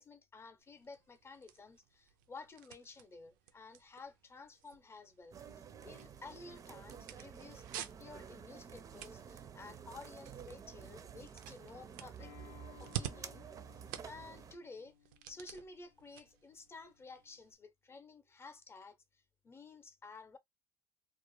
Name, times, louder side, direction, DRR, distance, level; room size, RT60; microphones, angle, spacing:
voice 1, 0.0-12.3 12.8-13.4 14.0-14.9 15.3-20.4, left 3 dB, 25° left, 0.7 m, -53 dB
sound 1, 0.6-17.6, right 11 dB, 85° right, 0.4 m, -51 dB
sound 2, 5.3-14.6, right 7 dB, 35° right, 0.5 m, -51 dB
Acoustic guitar, 12.2-17.4, left 11 dB, 75° left, 0.5 m, -62 dB
2.4 x 2.0 x 3.0 m
supercardioid pair, 90°, 10 cm